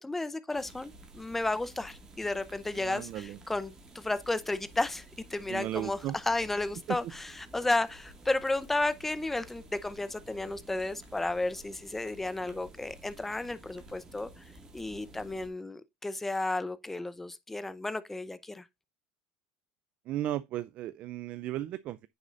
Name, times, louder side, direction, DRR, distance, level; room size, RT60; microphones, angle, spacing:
voice 1, 0.0-5.0 5.3-6.0 6.3-7.2 7.5-14.3 14.7-18.6, left 2 dB, 10° left, 0.7 m, -33 dB
sound 1, 0.5-15.5, right 1 dB, 20° right, 2.1 m, -53 dB
voice 2, 2.7-3.4 5.5-6.2 6.9-7.1 20.1-22.1, right 13 dB, 45° right, 0.4 m, -35 dB
9.2 x 6.5 x 2.5 m
cardioid pair, 145°, 3 cm